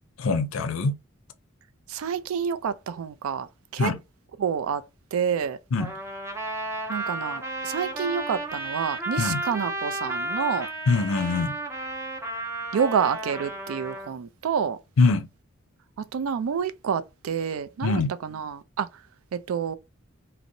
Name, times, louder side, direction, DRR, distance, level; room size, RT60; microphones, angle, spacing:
voice 1, 0.2-1.0 3.8-4.0 5.7-5.9 9.2-9.4 10.9-11.5 15.0-15.3 17.8-18.1, left 3 dB, 80° left, 0.5 m, -23 dB
voice 2, 1.9-3.9 4.4-4.8 5.1-5.6 6.9-10.7 12.7-14.8 16.1-18.9 19.3-19.8, right 7 dB, 85° right, 0.4 m, -28 dB
Trumpet, 5.8-14.1, right 2 dB, 15° right, 0.5 m, -33 dB
2.6 x 2.0 x 2.7 m
head